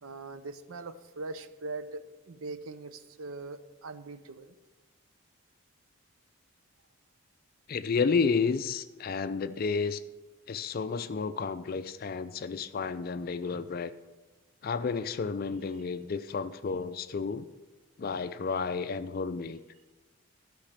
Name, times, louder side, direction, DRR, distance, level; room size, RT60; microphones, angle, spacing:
voice 1, 0.0-4.5, right 3 dB, 80° right, 12 dB, 0.7 m, -41 dB
voice 2, 7.7-10.0 10.5-13.9 14.6-17.5 18.0-19.6, left 5 dB, 45° left, 12 dB, 0.4 m, -31 dB
12.0 x 5.8 x 6.7 m, 1.2 s
head